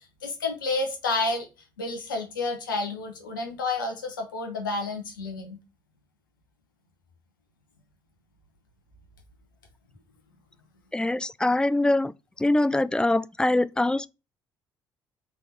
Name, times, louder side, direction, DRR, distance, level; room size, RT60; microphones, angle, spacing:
voice 1, 0.2-1.5 1.8-5.6, left 3 dB, 80° left, 1.1 m, -30 dB
voice 2, 10.9-12.1 12.4-14.1, left 2 dB, 10° left, 0.3 m, -23 dB
3.6 x 3.6 x 4.0 m
figure-of-eight pair, 50°, 11 cm